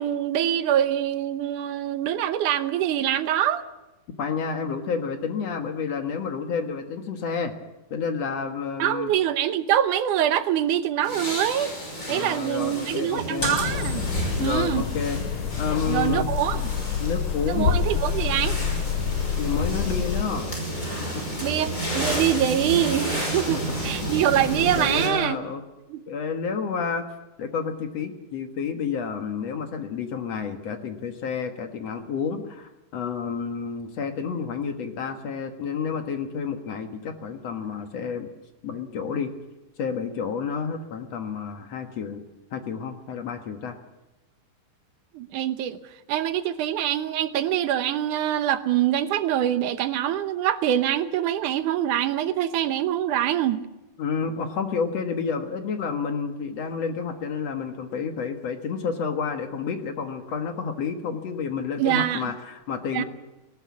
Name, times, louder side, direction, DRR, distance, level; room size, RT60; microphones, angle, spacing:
voice 1, 0.0-3.6 8.8-11.7 12.1-14.0 14.4-14.8 15.9-16.6 17.5-18.6 21.4-25.4 25.9-26.0 45.1-45.8 46.1-53.6 61.8-62.3 62.9-63.0, right 11 dB, 75° right, 11 dB, 2.4 m, -24 dB
voice 2, 4.2-7.5 7.9-9.1 12.1-13.6 14.4-15.2 15.6-16.3 16.9-17.8 19.4-20.5 21.1-21.2 23.4-24.1 24.8-25.6 26.1-27.1 27.4-38.3 38.6-39.3 39.8-42.2 42.5-43.8 54.0-63.0, left 6 dB, 55° left, 7 dB, 2.4 m, -30 dB
sound 1, 11.0-25.1, equal, 20° left, 5.8 m, -32 dB
sound 2, 13.4-20.2, left 7 dB, 85° left, 3.8 m, -27 dB
19.0 x 18.0 x 8.5 m, 1.0 s
omnidirectional pair, 3.7 m